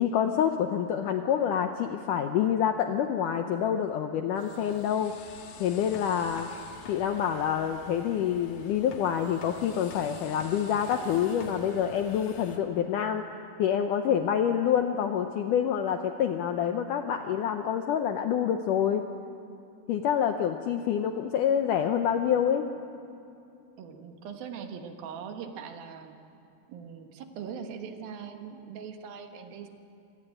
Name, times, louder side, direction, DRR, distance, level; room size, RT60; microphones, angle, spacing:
voice 1, 0.0-5.3 5.6-6.5 6.9-13.2 13.6-19.0 19.9-22.7, left 9 dB, 75° left, 6 dB, 1.9 m, -27 dB
sound 1, 4.4-12.6, left 5 dB, 60° left, 2.7 m, -47 dB
voice 2, 23.8-26.2 26.7-29.7, right 7 dB, 70° right, 6 dB, 3.0 m, -41 dB
26.0 x 18.0 x 8.9 m, 2.7 s
omnidirectional pair, 4.6 m